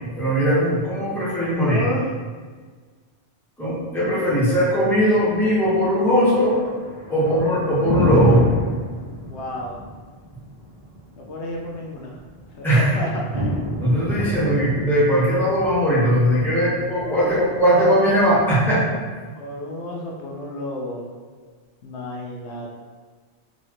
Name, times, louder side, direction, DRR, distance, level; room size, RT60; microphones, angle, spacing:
voice 1, 0.2-1.8 3.6-6.6 7.1-8.5 12.6-12.9 13.8-18.8, equal, ahead, -9 dB, 1.2 m, -19 dB
voice 2, 1.7-2.1 7.2-7.4 9.2-9.8 11.1-12.2 12.5-13.6 17.0-18.5 19.4-21.1 21.8-22.7, left 1 dB, 75° left, -2 dB, 0.9 m, -31 dB
Thunder, 4.5-18.5, equal, 30° right, 0.6 m, -29 dB
4.1 x 2.9 x 3.0 m, 1.5 s
omnidirectional pair, 1.2 m